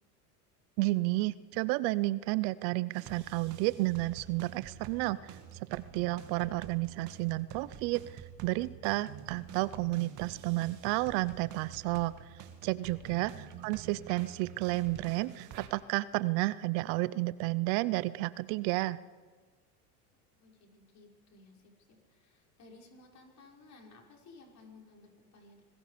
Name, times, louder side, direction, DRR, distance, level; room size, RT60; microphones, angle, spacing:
voice 1, 0.8-19.0, right 20 dB, 60° right, 18 dB, 0.7 m, -32 dB
sound 1, 2.9-15.7, right 8 dB, 40° right, 2.3 m, -48 dB
voice 2, 20.4-25.6, left 3 dB, 35° left, -1 dB, 5.7 m, -57 dB
25.5 x 20.5 x 5.1 m, 1.4 s
supercardioid pair, 115°, 46 cm